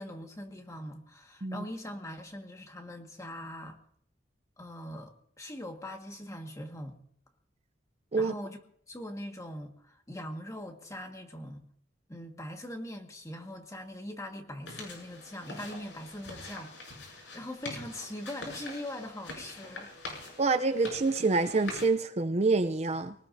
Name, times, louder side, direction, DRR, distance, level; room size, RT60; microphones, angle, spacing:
voice 1, 0.0-3.8 4.6-7.0 8.2-8.6 8.9-11.6 12.1-16.7 17.1-19.9, left 1 dB, 20° left, 1.8 m, -41 dB
sound 1, 14.7-21.9, left 2 dB, 90° left, 7.4 m, -44 dB
voice 2, 20.4-23.1, right 3 dB, 35° right, 0.6 m, -27 dB
23.5 x 19.0 x 2.7 m
head